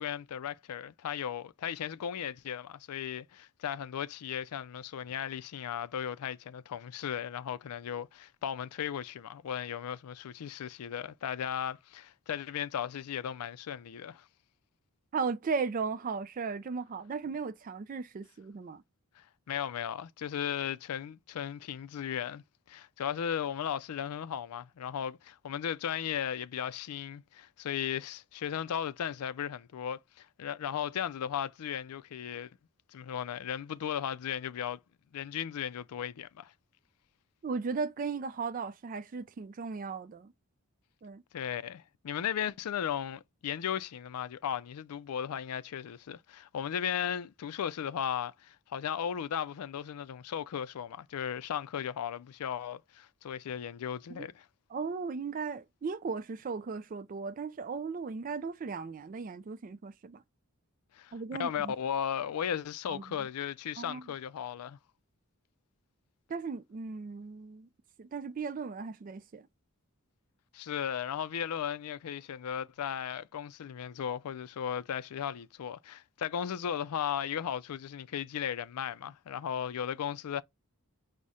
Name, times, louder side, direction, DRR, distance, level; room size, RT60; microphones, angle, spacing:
voice 1, 0.0-14.3 19.2-32.5 32.9-34.8 35.1-36.5 41.3-54.5 60.9-61.1 61.4-64.8 70.5-80.4, left 8 dB, 90° left, 0.4 m, -36 dB
voice 2, 15.1-18.8 37.4-40.3 41.0-41.2 54.1-54.3 54.7-60.2 61.1-61.7 62.9-63.3 63.8-64.1 66.3-67.7 68.0-69.5, right 5 dB, 35° right, 0.3 m, -36 dB
4.9 x 2.1 x 4.1 m
head